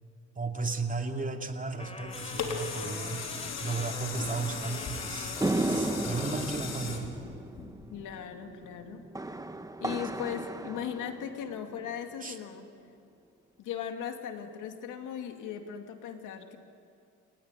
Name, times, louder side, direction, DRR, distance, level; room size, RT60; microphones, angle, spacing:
voice 1, 0.4-3.2 3.6-5.3 5.6-7.1 12.2-12.4, right 3 dB, 25° right, 4 dB, 2.6 m, -34 dB
sound 1, 1.8-8.1 8.6-8.7, left 5 dB, 60° left, 3.8 m, -38 dB
sound 2, 1.8-6.7, left 2 dB, 20° left, 3.6 m, -44 dB
sound 3, 5.4-11.9, right 2 dB, 10° right, 1.3 m, -34 dB
voice 2, 7.9-9.1 9.8-12.7 13.6-16.6, left 8 dB, 85° left, 5 dB, 2.4 m, -38 dB
29.0 x 19.0 x 9.7 m, 2.4 s
cardioid pair, 90°, 30 cm